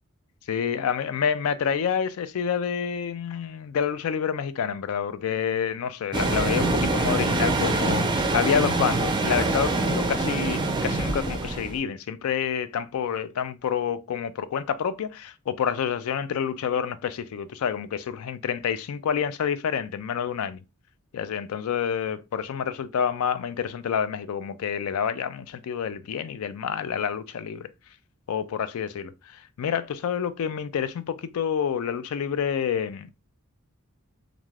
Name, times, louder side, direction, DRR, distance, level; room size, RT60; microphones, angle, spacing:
voice 1, 0.5-20.6 21.1-27.7 28.3-33.1, left 7 dB, 85° left, 0.3 m, -28 dB
sound 1, 6.1-11.8, right 2 dB, 20° right, 0.4 m, -25 dB
3.2 x 2.5 x 2.3 m
head